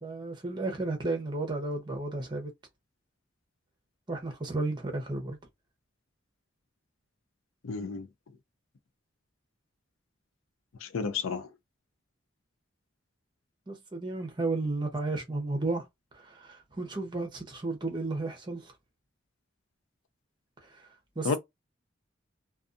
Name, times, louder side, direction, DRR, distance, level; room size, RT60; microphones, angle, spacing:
voice 1, 0.0-2.5 4.1-5.4 13.7-15.8 16.1-18.7 20.6-21.4, right 2 dB, 20° right, 0.8 m, -33 dB
voice 2, 7.6-8.1 10.8-11.5 21.2-21.4, left 4 dB, 85° left, 0.5 m, -31 dB
2.5 x 2.3 x 2.5 m
head